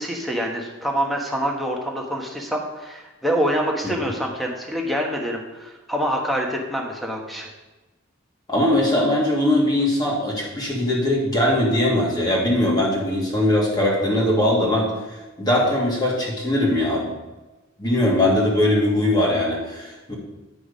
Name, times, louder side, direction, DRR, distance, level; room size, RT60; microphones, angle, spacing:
voice 1, 0.0-7.5, equal, ahead, 0 dB, 1.3 m, -26 dB
voice 2, 8.5-14.9 15.4-17.1 17.8-20.1, left 1 dB, 20° left, -4 dB, 2.1 m, -20 dB
9.0 x 6.2 x 5.1 m, 1.1 s
head